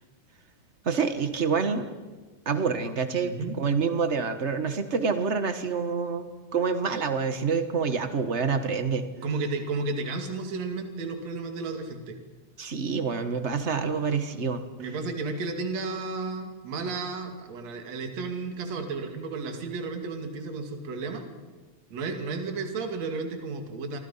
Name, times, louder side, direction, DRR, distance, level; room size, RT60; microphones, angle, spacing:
voice 1, 0.8-1.9 2.4-9.0 12.6-14.6, right 5 dB, 75° right, 8 dB, 0.6 m, -27 dB
voice 2, 3.2-3.6 9.2-12.2 14.8-21.3 21.9-24.0, right 3 dB, 55° right, 5 dB, 3.6 m, -33 dB
29.0 x 24.5 x 5.7 m, 1.2 s
omnidirectional pair, 3.8 m